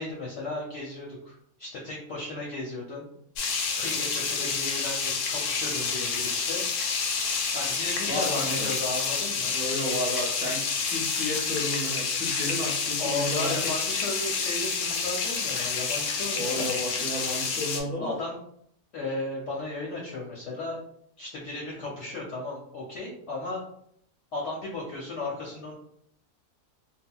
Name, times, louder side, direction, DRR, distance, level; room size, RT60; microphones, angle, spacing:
voice 1, 0.0-3.1 3.7-6.6 7.5-9.6 13.0-16.7 18.0-18.4 18.9-20.8 21.2-23.6 24.3-25.7, left 2 dB, 65° left, -3 dB, 0.8 m, -35 dB
sound 1, 3.4-17.8, left 5 dB, 85° left, 1.1 m, -29 dB
voice 2, 8.1-8.7 9.5-13.6 16.3-18.1, left 1 dB, 10° left, -6 dB, 0.8 m, -32 dB
3.5 x 2.1 x 2.2 m, 0.68 s
omnidirectional pair, 1.6 m